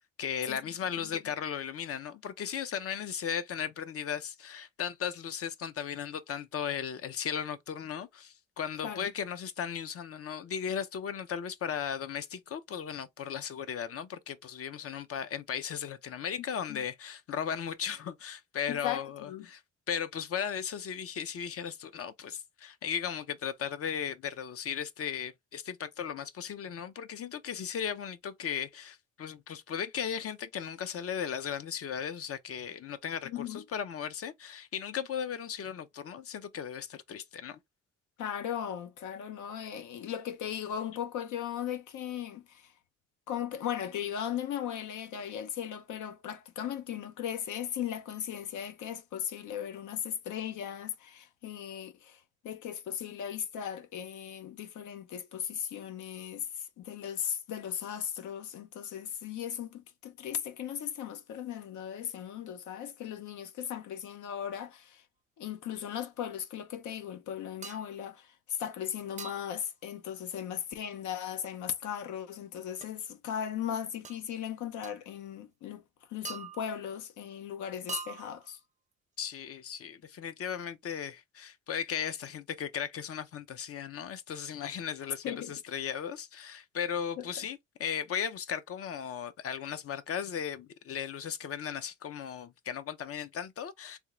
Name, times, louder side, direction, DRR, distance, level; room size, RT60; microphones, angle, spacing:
voice 1, 0.2-19.6 19.9-37.6 79.2-94.0, left 8 dB, 50° left, 0.6 m, -36 dB
voice 2, 18.7-19.5 33.2-33.6 38.2-42.7 43.3-65.0 65.4-75.8 76.1-78.6 85.2-85.5 87.2-87.5, left 9 dB, 80° left, 0.8 m, -37 dB
sound 1, 67.6-67.9 69.2-69.6 72.8-72.9 74.0-74.2 74.8-75.0 76.2-76.9 77.9-78.6, right 5 dB, 25° right, 0.5 m, -43 dB
3.5 x 2.4 x 2.9 m
cardioid pair, 90°, 30 cm